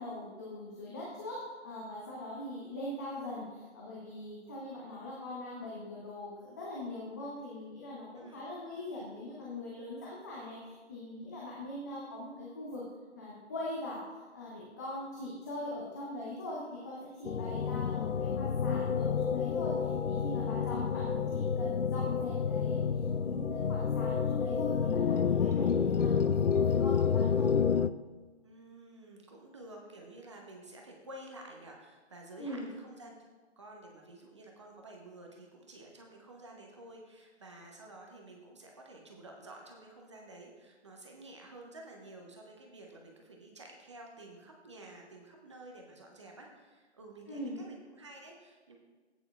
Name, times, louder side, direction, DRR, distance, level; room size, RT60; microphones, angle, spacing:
voice 1, 0.0-1.4 1.6-12.8 13.1-14.0 14.3-27.5 32.4-32.7 47.3-47.6, left 1 dB, 15° left, -5 dB, 0.9 m, -42 dB
sound 1, 17.2-27.9, left 6 dB, 80° left, 0.6 m, -29 dB
voice 2, 28.4-33.3 33.6-48.8, right 2 dB, 25° right, 1 dB, 0.9 m, -51 dB
15.5 x 9.2 x 2.4 m, 1.3 s
figure-of-eight pair, 150°, 36 cm